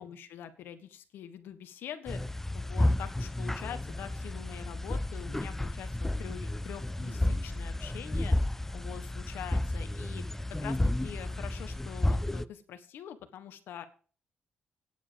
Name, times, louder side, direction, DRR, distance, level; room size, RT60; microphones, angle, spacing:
voice 1, 0.0-2.2 2.5-8.3 8.7-13.8, left 9 dB, 85° left, 9 dB, 1.5 m, -44 dB
sound 1, 2.1-12.5, left 1 dB, 10° left, 0.5 m, -32 dB
9.9 x 7.6 x 6.9 m, 0.40 s
cardioid pair, 90°, 4 cm